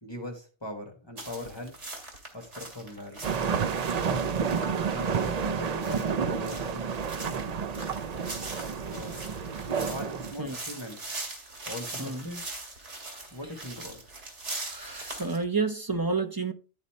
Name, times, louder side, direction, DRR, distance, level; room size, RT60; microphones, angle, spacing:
voice 1, 0.0-1.8 2.3-3.2 4.9-6.8 8.9-9.2 9.8-11.1 11.6-12.5 13.3-14.0, left 1 dB, 25° left, 1.3 m, -40 dB
sound 1, 1.2-15.4, right 2 dB, 90° right, 2.4 m, -41 dB
sound 2, 3.2-10.3, right 6 dB, 45° right, 0.5 m, -30 dB
voice 2, 13.1-13.5 14.7-16.5, right 4 dB, 20° right, 0.8 m, -31 dB
11.5 x 4.1 x 4.2 m
omnidirectional pair, 1.2 m